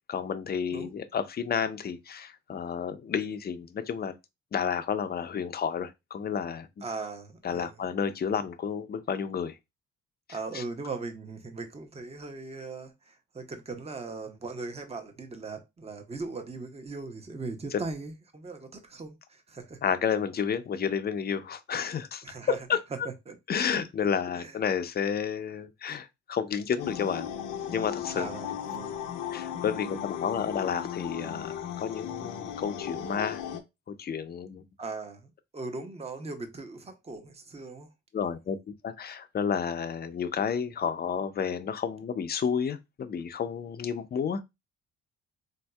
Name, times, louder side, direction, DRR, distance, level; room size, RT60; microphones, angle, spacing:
voice 1, 0.1-4.1 4.5-6.7 7.4-9.6 10.5-10.6 17.7-17.8 19.8-22.2 22.7-22.8 23.5-27.3 27.7-28.3 29.3-33.4 33.9-34.6 38.1-38.6 38.8-44.4, left 7 dB, 35° left, 0.5 m, -31 dB
voice 2, 6.8-7.8 10.3-19.8 22.2-22.7 23.0-23.4 23.7-24.1 24.3-24.6 28.1-29.1 34.8-37.9, right 3 dB, 20° right, 0.7 m, -39 dB
sound 1, 26.8-33.6, left 9 dB, 85° left, 0.6 m, -36 dB
3.9 x 2.6 x 2.2 m
cardioid pair, 90°, 30 cm